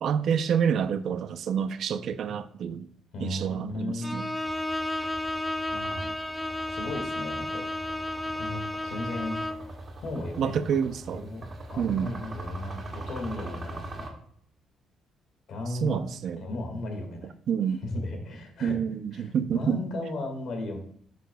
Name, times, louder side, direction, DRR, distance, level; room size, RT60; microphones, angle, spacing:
voice 1, 0.0-2.9 3.2-4.3 10.4-11.2 11.8-12.1 15.8-16.4 17.5-17.8 18.6-19.8, right 7 dB, 60° right, 0.5 m, -28 dB
voice 2, 3.1-4.2 5.7-6.2 6.7-7.6 8.4-10.6 11.1-14.1 15.5-16.0 16.4-17.3 17.8-18.8 19.1-20.8, left 2 dB, 60° left, 1.9 m, -35 dB
Bowed string instrument, 4.0-9.7, left 1 dB, ahead, 0.4 m, -32 dB
sound 1, 4.4-14.1, right 1 dB, 30° right, 1.5 m, -42 dB
10.0 x 6.0 x 2.3 m
cardioid pair, 110°, 0 cm